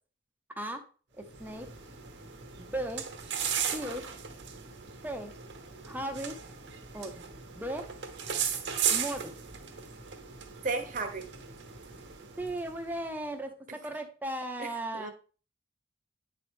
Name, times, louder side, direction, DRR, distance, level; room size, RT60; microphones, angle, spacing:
voice 1, 1.2-1.7 2.6-3.1 3.7-4.1 5.0-5.3 5.8-6.3 6.9-7.9 8.9-9.3 12.4-15.1, right 1 dB, 10° right, 4 dB, 0.7 m, -36 dB
sound 1, 1.2-13.0, right 8 dB, 75° right, 1.0 m, -37 dB
voice 2, 10.6-11.3 14.6-15.1, right 3 dB, 45° right, 5 dB, 0.9 m, -34 dB
9.5 x 4.0 x 3.4 m, 0.38 s
head